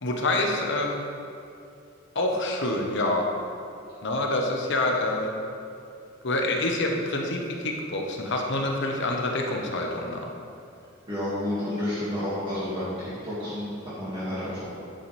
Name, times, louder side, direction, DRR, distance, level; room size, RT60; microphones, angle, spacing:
voice 1, 0.0-1.0 2.1-3.3 4.0-5.3 6.2-10.3, left 2 dB, 60° left, 1 dB, 1.2 m, -27 dB
voice 2, 11.1-14.7, left 1 dB, 25° right, -12 dB, 2.2 m, -30 dB
10.0 x 8.7 x 3.4 m, 2.5 s
head